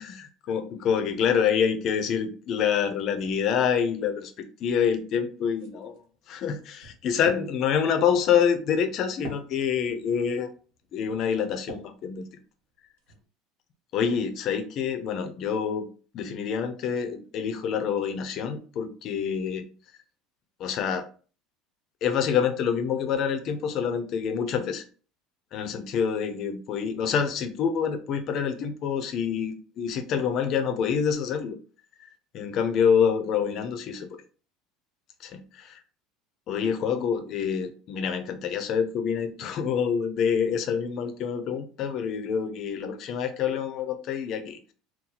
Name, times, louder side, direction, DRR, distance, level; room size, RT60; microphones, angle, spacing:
voice 1, 0.5-5.9 6.3-10.5 10.9-12.3 13.9-15.9 16.1-19.7 20.6-21.0 22.0-24.8 25.5-31.6 32.0-32.1 32.3-34.1 35.2-35.8 36.5-44.7, left 7 dB, 35° left, 9 dB, 0.4 m, -27 dB
sound 1, 5.5-12.0 12.5-13.2, right 3 dB, 90° right, 1.4 m, -46 dB
2.8 x 2.3 x 3.8 m, 0.39 s
cardioid pair, 180°, 0 cm